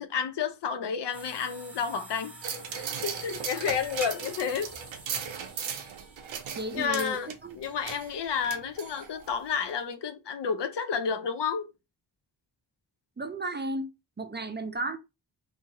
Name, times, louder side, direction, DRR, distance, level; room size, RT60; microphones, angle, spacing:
voice 1, 0.0-2.4 2.7-4.8 6.7-7.3 7.5-11.7, left 6 dB, 65° left, 0.6 m, -31 dB
sound 1, 1.1-7.9, right 2 dB, 5° right, 1.1 m, -47 dB
sound 2, 2.4-9.3 9.7-9.8, right 7 dB, 80° right, 0.6 m, -38 dB
voice 2, 6.6-7.6 13.2-13.9 14.2-15.0, right 2 dB, 25° right, 0.5 m, -34 dB
2.6 x 2.4 x 2.8 m
cardioid pair, 45°, 46 cm